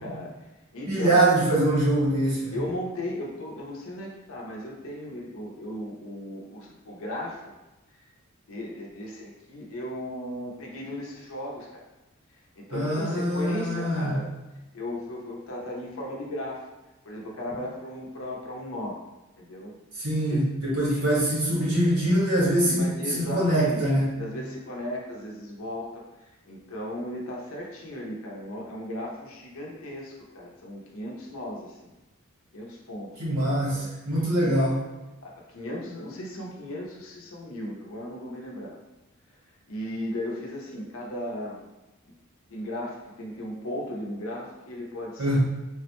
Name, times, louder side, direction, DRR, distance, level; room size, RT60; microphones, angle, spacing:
voice 1, 0.0-1.2 2.5-7.5 8.5-11.8 12.6-14.3 14.7-16.7 17.0-19.0 19.4-19.7 20.2-20.5 20.9-21.0 22.6-23.8 24.1-26.0 26.5-31.9 32.5-33.9 34.4-34.5 35.2-38.8 39.7-41.6 42.1-42.2 42.5-45.4, left 1 dB, 65° left, -2 dB, 0.6 m, -36 dB
voice 2, 0.9-2.6 12.7-14.2 19.9-22.8 23.1-24.2 33.2-34.8 45.2-45.4, right 1 dB, 80° right, -7 dB, 1.3 m, -24 dB
3.4 x 2.1 x 2.9 m, 1.0 s
head